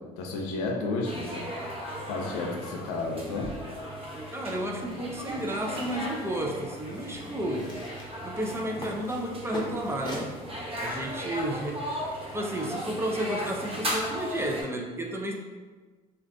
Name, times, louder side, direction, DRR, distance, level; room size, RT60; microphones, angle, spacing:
voice 1, 0.0-1.5 2.0-3.5, left 3 dB, 90° left, 1 dB, 0.5 m, -32 dB
sound 1, 1.0-14.6, equal, 30° right, 1.0 m, -37 dB
voice 2, 4.3-7.7 8.2-10.4 10.8-15.3, right 1 dB, 15° right, 0 dB, 0.5 m, -32 dB
sound 2, 4.8-10.3, equal, 25° left, 1.0 m, -43 dB
2.5 x 2.4 x 3.5 m, 1.4 s
supercardioid pair, 70°, 19 cm